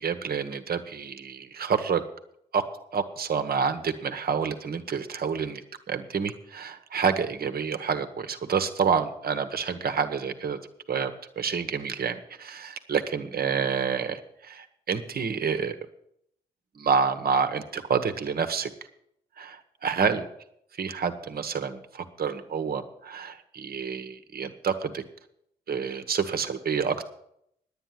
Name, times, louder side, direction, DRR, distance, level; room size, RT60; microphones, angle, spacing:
voice 1, 0.0-2.0 2.5-2.6 2.9-5.6 5.9-10.6 10.9-11.1 11.4-15.8 16.7-18.7 19.4-20.3 20.8-25.0 25.7-27.1, right 6 dB, 55° right, 9 dB, 1.3 m, -28 dB
10.5 x 8.9 x 7.5 m, 0.73 s
hypercardioid pair, 45°, 19 cm